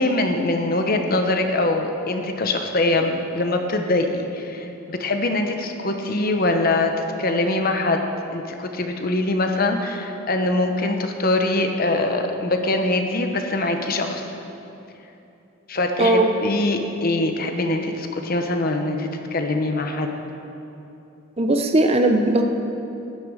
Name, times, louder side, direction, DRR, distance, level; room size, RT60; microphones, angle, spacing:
voice 1, 0.0-6.9 7.2-8.1 8.3-14.3 15.7-20.1, left 2 dB, 45° left, 5 dB, 0.9 m, -23 dB
voice 2, 16.0-16.3 21.4-22.4, right 2 dB, 30° right, 4 dB, 0.7 m, -18 dB
12.0 x 10.0 x 6.4 m, 2.9 s
head